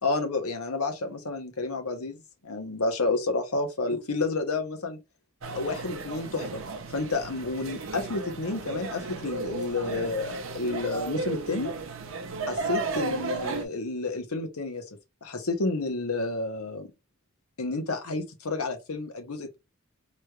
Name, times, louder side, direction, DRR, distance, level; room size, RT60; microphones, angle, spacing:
voice 1, 0.0-5.0 5.5-6.6 6.9-11.7 12.5-14.8 15.2-16.9 17.6-19.6, left 3 dB, 80° left, 0.9 m, -30 dB
sound 1, 5.4-13.6, right 3 dB, 60° right, 0.6 m, -34 dB
3.1 x 3.0 x 2.3 m
head